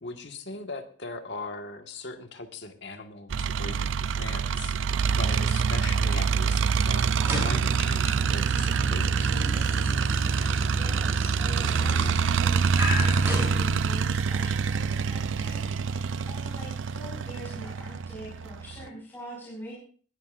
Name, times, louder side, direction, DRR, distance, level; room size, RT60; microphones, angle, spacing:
voice 1, 0.0-3.9 4.2-4.8 5.1-9.3, left 3 dB, 65° left, 5 dB, 1.6 m, -40 dB
sound 1, 3.3-18.9, right 5 dB, 80° right, 0.5 m, -26 dB
sound 2, 7.1-14.3, equal, 15° right, 6.7 m, -35 dB
voice 2, 10.6-19.7, right 1 dB, 10° left, -5 dB, 5.5 m, -44 dB
20.5 x 13.0 x 2.5 m, 0.43 s
head